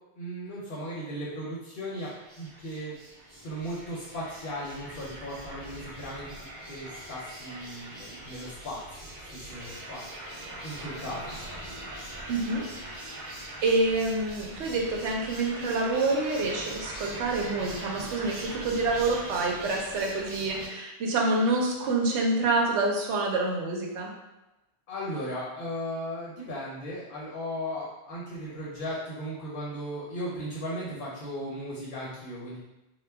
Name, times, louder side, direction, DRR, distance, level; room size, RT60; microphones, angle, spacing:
voice 1, 0.2-2.1 2.4-3.0 3.3-6.3 6.7-9.1 9.3-10.0 10.6-11.3 24.9-32.6, equal, 60° left, -5 dB, 0.7 m, -36 dB
sound 1, 1.9-20.7, right 1 dB, 55° right, 0.6 m, -42 dB
voice 2, 12.3-12.6 13.6-24.1, right 2 dB, 90° right, 0 dB, 0.9 m, -27 dB
2.2 x 2.1 x 3.3 m, 0.96 s
omnidirectional pair, 1.1 m